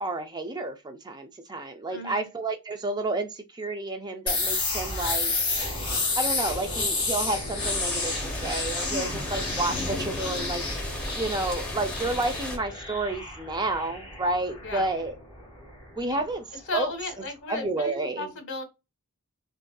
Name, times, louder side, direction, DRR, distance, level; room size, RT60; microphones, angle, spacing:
voice 1, 0.0-5.3 6.2-8.1 8.4-10.6 11.1-15.2 16.0-16.5 16.7-16.9 17.5-18.3, right 2 dB, 20° right, 0.4 m, -30 dB
voice 2, 1.9-2.3 8.9-9.2 14.6-14.9 16.1-16.3 16.7-18.6, left 2 dB, 55° left, 1.2 m, -35 dB
sound 1, 4.3-15.9, left 3 dB, 25° left, 2.1 m, -31 dB
sound 2, 7.6-12.6, left 1 dB, 5° left, 0.9 m, -34 dB
3.8 x 2.5 x 2.2 m
head